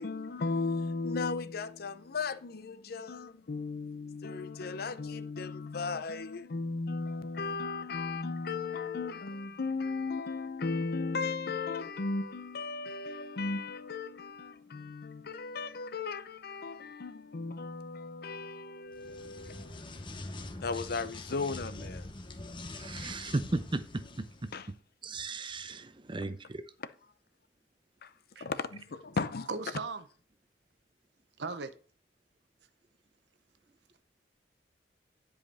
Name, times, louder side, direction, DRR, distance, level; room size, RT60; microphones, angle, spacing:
voice 1, 0.0-22.2 23.0-23.2 24.5-24.7 26.8-26.9 28.0-28.1 28.4-29.5, left 4 dB, 60° left, 0.6 m, -36 dB
sound 1, 18.9-24.6, left 2 dB, 30° left, 0.8 m, -44 dB
voice 2, 22.7-24.5 25.0-26.6, right 2 dB, 30° right, 0.6 m, -36 dB
voice 3, 29.5-30.1 31.4-31.7, right 4 dB, 70° right, 0.8 m, -37 dB
10.0 x 5.1 x 4.1 m
head